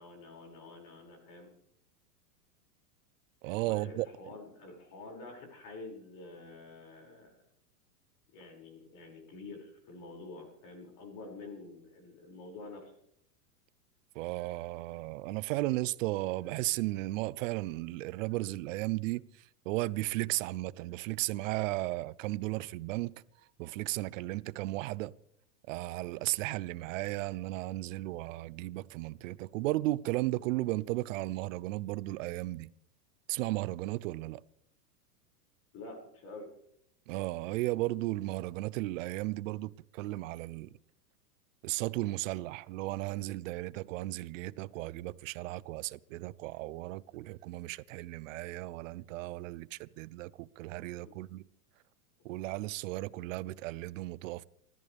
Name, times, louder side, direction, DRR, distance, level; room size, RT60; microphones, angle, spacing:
voice 1, 0.0-1.5 3.6-7.3 8.3-12.9 35.7-36.5 51.0-51.2, left 3 dB, 45° left, 6.1 m, -48 dB
voice 2, 3.4-4.1 14.1-23.2 23.6-25.1 25.7-32.7 33.3-34.4 37.1-40.7 41.6-51.4 52.2-54.4, right 18 dB, 55° right, 0.7 m, -35 dB
29.5 x 13.5 x 3.5 m
hypercardioid pair, 130°, 45 cm